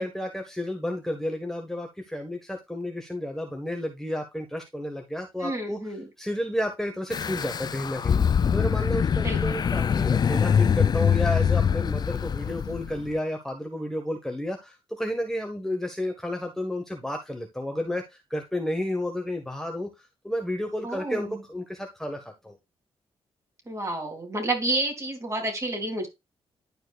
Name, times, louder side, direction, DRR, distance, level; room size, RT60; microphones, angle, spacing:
voice 1, 0.0-5.8 6.2-8.2 8.5-19.9 20.2-22.6, left 1 dB, 5° left, 3 dB, 1.7 m, -31 dB
voice 2, 5.4-6.1 9.2-9.6 20.8-21.4 23.7-26.1, right 2 dB, 30° right, 3 dB, 3.5 m, -30 dB
sound 1, 7.1-13.1, left 7 dB, 40° left, 0.4 m, -24 dB
11.5 x 4.6 x 2.5 m, 0.21 s
cardioid pair, 80°, 10 cm